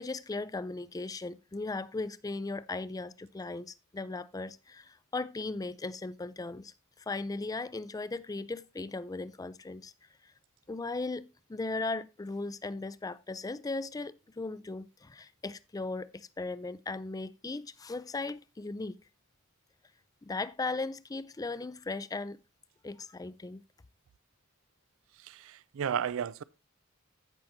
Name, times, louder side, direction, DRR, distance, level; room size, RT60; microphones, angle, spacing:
voice 1, 0.0-9.9 10.7-19.0 20.2-22.4 22.8-23.6, left 3 dB, 15° left, 0.4 m, -37 dB
voice 2, 25.2-26.4, right 8 dB, 65° right, 0.4 m, -33 dB
15.0 x 5.8 x 2.7 m
head